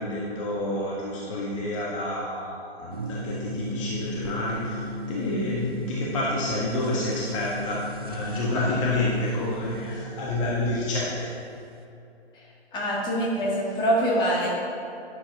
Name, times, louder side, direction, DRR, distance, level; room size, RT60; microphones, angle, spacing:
voice 1, 0.0-11.3, left 1 dB, 30° left, -5 dB, 1.3 m, -29 dB
sound 1, 2.9-10.0, left 1 dB, 25° right, 0.4 m, -35 dB
voice 2, 12.7-14.5, right 1 dB, 15° left, -4 dB, 1.6 m, -24 dB
11.5 x 10.5 x 2.8 m, 2.8 s
figure-of-eight pair, 130°, 33 cm